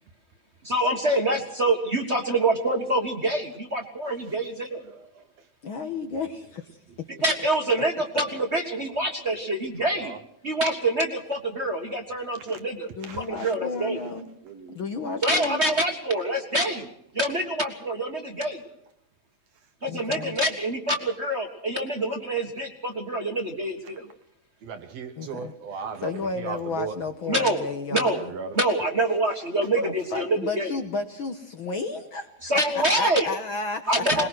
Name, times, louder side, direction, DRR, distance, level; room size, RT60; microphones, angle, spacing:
voice 1, 0.6-4.8 7.2-10.1 10.4-12.9 13.2-14.0 15.2-16.9 17.1-18.6 19.8-24.0 27.3-27.6 27.9-28.2 28.5-30.7 32.4-33.3 33.9-34.3, right 1 dB, 30° right, 1.2 m, -26 dB
voice 2, 4.8-5.2 9.6-10.2 12.5-12.6 13.0-14.8 23.9-24.0 24.6-27.0 28.2-28.6 34.1-34.3, right 6 dB, 65° right, 1.9 m, -38 dB
voice 3, 5.6-7.1 8.1-8.3 13.0-14.2 14.7-15.6 19.9-20.4 25.2-28.3 29.8-34.3, left 4 dB, 55° left, 1.5 m, -32 dB
21.5 x 20.5 x 6.2 m
omnidirectional pair, 3.4 m